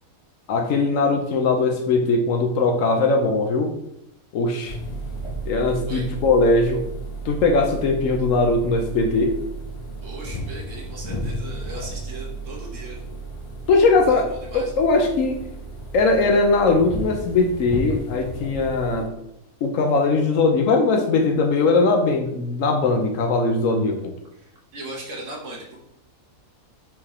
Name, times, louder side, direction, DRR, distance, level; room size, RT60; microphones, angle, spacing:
voice 1, 0.5-3.7 4.3-4.8 5.5-6.8 7.2-9.4 13.7-15.4 15.9-19.1 19.6-24.1, left 3 dB, 70° left, 4 dB, 0.9 m, -20 dB
sound 1, 4.6-19.0, right 2 dB, 35° left, 0.5 m, -33 dB
voice 2, 10.0-13.0 14.1-14.7 24.4-25.8, right 1 dB, 60° right, -2 dB, 1.4 m, -38 dB
4.5 x 3.6 x 3.0 m, 0.79 s
omnidirectional pair, 1.5 m